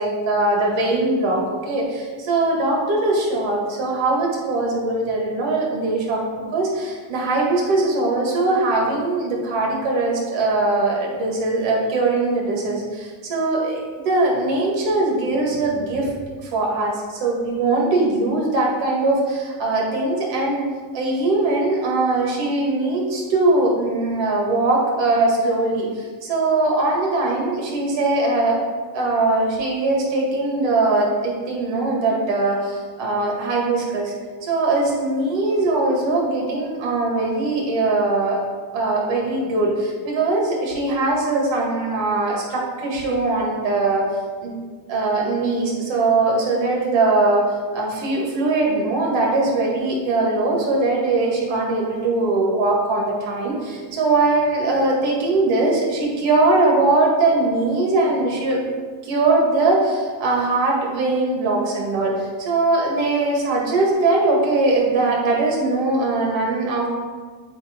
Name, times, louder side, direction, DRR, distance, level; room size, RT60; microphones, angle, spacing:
voice 1, 0.0-16.1 16.4-20.6 20.9-28.7 28.9-34.1 34.4-38.4 38.7-44.1 44.4-44.5 44.9-47.5 47.7-58.6 59.0-66.9, right 2 dB, 85° right, -2 dB, 1.9 m, -21 dB
8.0 x 2.9 x 5.0 m, 1.5 s
cardioid pair, 105°, 44 cm